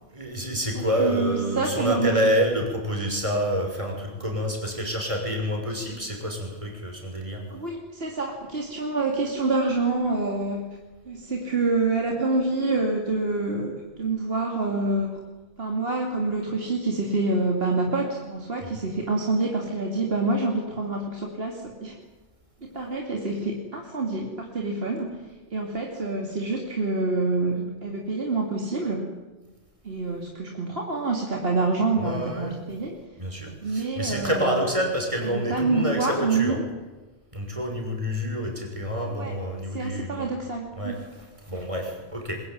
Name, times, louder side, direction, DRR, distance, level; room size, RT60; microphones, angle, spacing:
voice 1, 0.1-7.4 32.0-32.6 33.2-36.6 37.3-40.3 40.8-42.4, equal, 30° right, 2 dB, 6.2 m, -28 dB
voice 2, 0.7-2.1 5.7-5.9 7.5-10.7 11.1-15.2 15.6-22.0 22.6-25.2 25.5-29.1 29.8-33.0 33.6-34.6 35.2-36.6 39.1-39.3 39.7-41.0, right 3 dB, 60° right, 1 dB, 3.0 m, -27 dB
23.0 x 21.5 x 9.5 m, 1.2 s
omnidirectional pair, 1.1 m